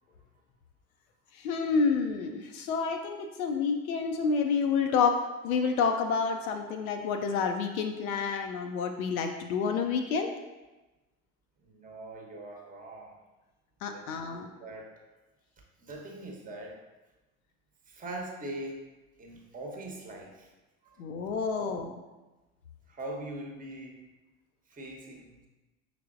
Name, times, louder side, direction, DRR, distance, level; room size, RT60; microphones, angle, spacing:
voice 1, 1.3-10.3 13.8-14.5 21.0-22.0, left 5 dB, 70° left, 5 dB, 0.5 m, -29 dB
voice 2, 11.7-13.2 13.9-14.9 15.8-16.8 17.9-18.9 19.2-20.5 20.8-21.0 21.5-21.8 22.9-24.1 24.7-25.5, right 1 dB, 20° right, 0 dB, 0.9 m, -42 dB
5.8 x 3.3 x 2.4 m, 1.1 s
figure-of-eight pair, 65°, 44 cm